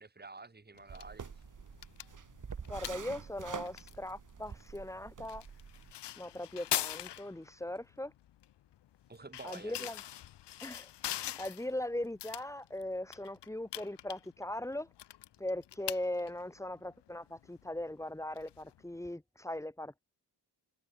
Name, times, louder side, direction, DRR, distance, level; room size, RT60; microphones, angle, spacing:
voice 1, 0.0-1.4 9.1-9.9, right 3 dB, 25° right, 5.5 m, -50 dB
sound 1, 0.7-19.1, left 12 dB, 80° left, 1.1 m, -44 dB
sound 2, 0.9-5.9, right 6 dB, 50° right, 5.2 m, -47 dB
voice 2, 2.7-5.4 6.2-8.1 9.4-10.0 10.6-14.9 15.4-20.0, left 1 dB, 5° left, 2.7 m, -39 dB
cardioid pair, 100°, 41 cm